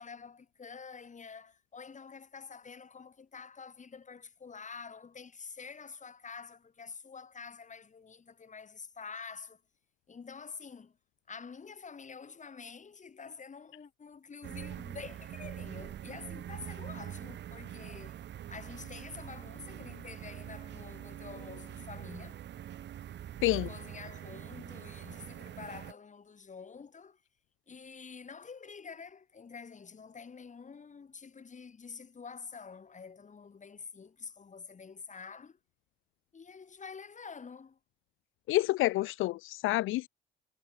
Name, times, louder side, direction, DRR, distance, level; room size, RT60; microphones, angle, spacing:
voice 1, 0.0-9.6 10.1-11.0 11.3-18.2 18.5-22.4 23.3-27.2 27.7-35.6 36.3-37.8, left 5 dB, 40° left, 6.1 m, -48 dB
sound 1, 14.4-25.9, right 11 dB, 65° right, 1.1 m, -44 dB
voice 2, 38.5-40.1, left 17 dB, 85° left, 0.6 m, -28 dB
cardioid pair, 90°, 20 cm